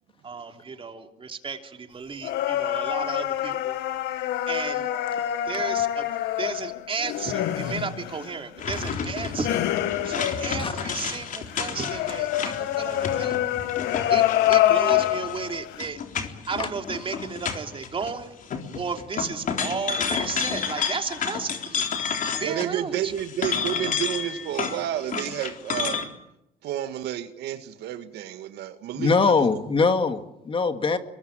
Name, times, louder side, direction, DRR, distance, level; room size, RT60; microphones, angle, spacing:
voice 1, 0.2-3.7 4.5-4.9 5.5-6.1 6.4-9.6 10.0-13.6 14.1-14.2 14.5-16.0 16.5-18.4 18.7-21.9 22.4-23.1, right 5 dB, 30° right, 5 dB, 3.2 m, -33 dB
sound 1, 2.2-11.0 11.5-15.8, left 13 dB, 85° left, 1.8 m, -26 dB
sound 2, 8.6-18.1 18.4-22.7 23.0-26.1, left 6 dB, 50° left, 3.8 m, -31 dB
voice 2, 22.4-26.0 26.6-29.3 29.8-29.9, right 11 dB, 80° right, 9 dB, 2.0 m, -30 dB
voice 3, 29.0-31.0, left 4 dB, 30° left, 8 dB, 2.1 m, -22 dB
24.0 x 22.0 x 9.1 m, 0.85 s
cardioid pair, 110°, 17 cm